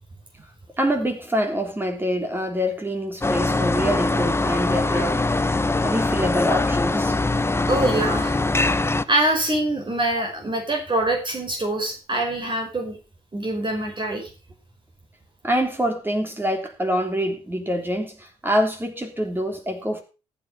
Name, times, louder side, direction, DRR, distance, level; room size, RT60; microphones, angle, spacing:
voice 1, 0.8-5.2 5.8-7.2 15.4-20.0, equal, 10° right, 3 dB, 3.2 m, -25 dB
sound 1, 3.2-9.0, left 2 dB, 15° left, 1.0 m, -22 dB
voice 2, 7.7-8.4 9.1-13.0 13.3-14.3, right 1 dB, 30° right, 2 dB, 5.0 m, -24 dB
14.5 x 9.0 x 5.4 m, 0.33 s
hypercardioid pair, 45°, 17 cm